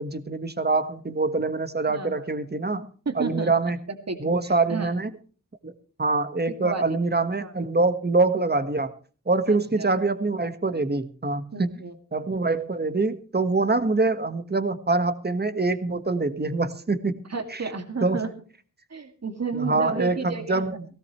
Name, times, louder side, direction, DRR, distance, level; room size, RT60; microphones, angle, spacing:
voice 1, 0.0-2.9 3.1-3.8 4.2-5.1 5.6-5.7 6.0-8.9 9.3-11.7 12.1-17.2 17.5-17.6 18.0-18.2 19.5-20.9, right 3 dB, 30° right, 10 dB, 1.6 m, -24 dB
voice 2, 1.9-2.2 3.1-3.5 4.1-5.0 6.5-7.0 7.4-7.5 9.5-9.9 11.5-11.9 17.3-18.3 18.9-20.6, right 4 dB, 50° right, 6 dB, 2.4 m, -32 dB
18.0 x 17.5 x 3.2 m, 0.39 s
wide cardioid pair, 85°, 33 cm